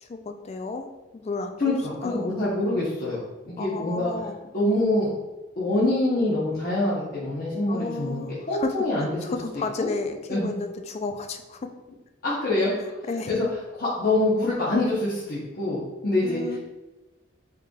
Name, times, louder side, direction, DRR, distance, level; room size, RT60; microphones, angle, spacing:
voice 1, 0.0-1.7 2.0-2.3 3.6-4.4 7.7-8.7 9.2-11.7 13.1-13.4 16.2-16.6, left 3 dB, 35° left, 6 dB, 0.3 m, -32 dB
voice 2, 1.6-3.2 3.5-4.1 4.5-5.1 5.6-9.1 9.8-9.9 10.3-10.5 12.2-12.7 13.3-13.4 13.8-16.6, left 2 dB, 50° left, -9 dB, 0.8 m, -25 dB
4.7 x 3.0 x 2.3 m, 1.1 s
head